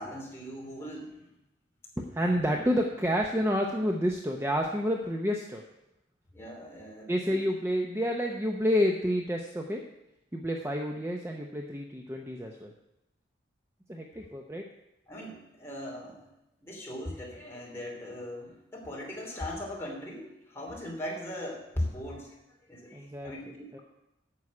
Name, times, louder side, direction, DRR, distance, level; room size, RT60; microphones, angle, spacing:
voice 1, 0.0-1.3 2.5-2.6 6.3-7.5 15.1-16.3 16.6-23.8, left 1 dB, 15° left, -2 dB, 2.7 m, -39 dB
voice 2, 2.0-5.6 7.1-9.8 10.3-12.7 13.9-14.6 22.9-23.3 23.7-23.8, equal, 15° right, 1 dB, 0.7 m, -29 dB
9.4 x 6.3 x 8.5 m, 0.89 s
head